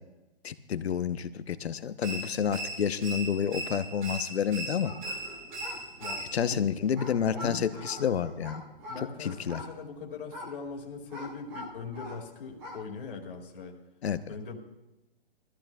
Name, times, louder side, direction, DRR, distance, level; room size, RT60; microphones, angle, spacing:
voice 1, 0.4-4.9 6.3-8.6 9.2-9.6 14.0-14.2, left 8 dB, 85° left, 12 dB, 0.8 m, -29 dB
sound 1, 2.0-6.6, right 2 dB, 50° right, 2.4 m, -39 dB
sound 2, 4.8-12.3 12.5-12.9, left 1 dB, 5° right, 0.6 m, -44 dB
voice 2, 6.0-6.8 7.3-7.6 8.9-13.8 14.3-14.6, left 4 dB, 55° left, 0 dB, 2.2 m, -41 dB
21.0 x 14.0 x 2.3 m, 1.0 s
hypercardioid pair, 170°, 31 cm